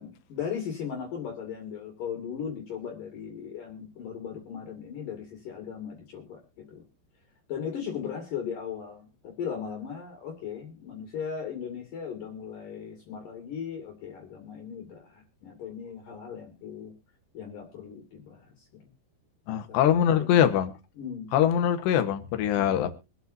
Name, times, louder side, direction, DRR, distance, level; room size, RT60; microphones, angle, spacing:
voice 1, 0.0-6.4 6.7-6.8 7.5-16.9 17.3-18.9 19.5-20.4 21.0-21.3, left 7 dB, 55° left, 1 dB, 3.7 m, -38 dB
voice 2, 19.5-20.7 21.3-22.9, left 10 dB, 90° left, 8 dB, 3.5 m, -23 dB
24.5 x 8.2 x 2.7 m, 0.29 s
omnidirectional pair, 4.8 m